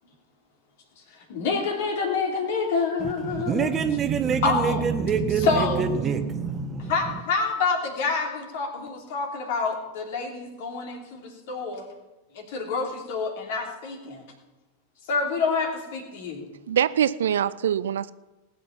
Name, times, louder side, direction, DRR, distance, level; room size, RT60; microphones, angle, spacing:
voice 1, 1.3-3.7 4.4-4.8 5.4-5.8 6.9-11.8 12.3-14.2 15.1-16.5, left 4 dB, 50° left, 3.0 m, -27 dB
voice 2, 3.0-6.9, right 6 dB, 25° right, 1.1 m, -26 dB
voice 3, 16.7-18.1, right 9 dB, 60° right, 0.4 m, -23 dB
19.0 x 8.5 x 5.8 m
figure-of-eight pair, 90°, 0 cm